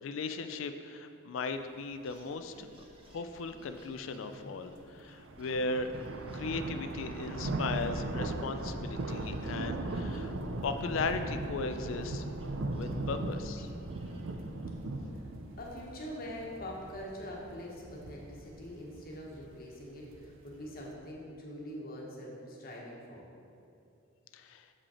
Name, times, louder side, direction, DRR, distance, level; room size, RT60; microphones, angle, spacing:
voice 1, 0.0-2.7 3.1-5.9 6.3-10.3 10.6-12.2 12.7-13.7 24.3-24.6, left 4 dB, 65° left, 9 dB, 0.4 m, -37 dB
sound 1, 2.0-8.3 8.6-14.8, equal, 25° right, 0.7 m, -55 dB
sound 2, 5.0-20.9, right 2 dB, 65° right, 0.5 m, -38 dB
voice 2, 15.6-23.3, equal, 45° left, -3 dB, 1.2 m, -44 dB
7.3 x 5.2 x 4.2 m, 2.6 s
head